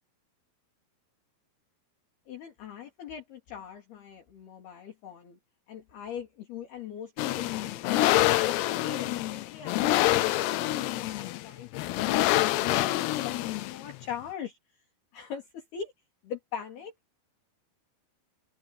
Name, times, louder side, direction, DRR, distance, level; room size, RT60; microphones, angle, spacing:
voice 1, 2.3-5.4 5.7-14.6 15.1-15.9 16.2-16.9, left 8 dB, 55° left, 5.1 m, -41 dB
sound 1, 7.2-14.0, left 16 dB, 85° left, 2.5 m, -26 dB
omnidirectional pair, 5.8 m